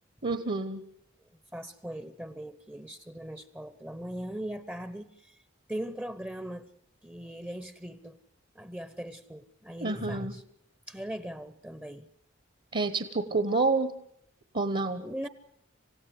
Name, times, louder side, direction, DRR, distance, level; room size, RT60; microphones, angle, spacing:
voice 1, 0.2-0.8 9.8-10.3 12.7-13.9 14.5-15.0, right 3 dB, 45° right, 1.2 m, -28 dB
voice 2, 1.5-5.1 5.7-6.7 7.0-8.2 8.6-10.4 10.9-12.1 15.0-15.3, right 1 dB, 10° right, 0.8 m, -39 dB
27.0 x 16.0 x 7.9 m
head